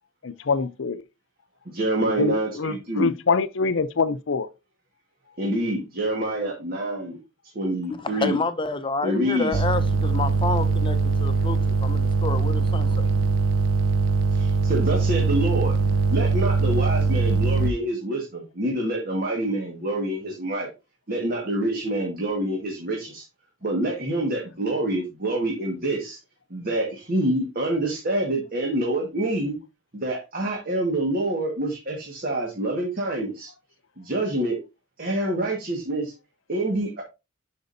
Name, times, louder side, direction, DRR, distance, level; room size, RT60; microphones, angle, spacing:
voice 1, 0.2-1.0 2.2-4.5, left 4 dB, 70° left, 0.6 m, -25 dB
voice 2, 1.6-3.1 5.4-7.2 7.5-8.4 9.0-9.6 14.3-15.7 16.1-20.7 21.1-23.2 23.6-26.2 26.5-29.6 29.9-33.5 34.0-34.6 35.0-36.1 36.5-37.0, right 1 dB, 50° right, 1.7 m, -26 dB
voice 3, 8.0-13.1, left 3 dB, 25° left, 0.7 m, -29 dB
sound 1, 9.5-17.7, right 4 dB, 70° right, 0.6 m, -22 dB
11.5 x 5.1 x 2.7 m
head